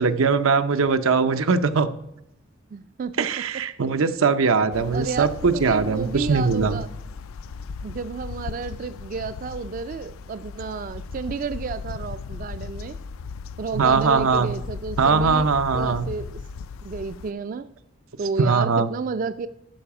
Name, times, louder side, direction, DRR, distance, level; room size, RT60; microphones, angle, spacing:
voice 1, 0.0-1.9 3.2-6.8 13.7-14.5 15.0-16.1 18.4-18.9, right 5 dB, 90° right, 10 dB, 0.6 m, -21 dB
voice 2, 2.7-3.3 4.9-6.9 7.8-13.0 13.6-16.4 16.8-17.7 18.2-19.5, right 4 dB, 40° right, 13 dB, 0.3 m, -31 dB
sound 1, 4.7-17.3, left 5 dB, 85° left, 0.4 m, -37 dB
12.0 x 4.8 x 5.8 m, 0.86 s
head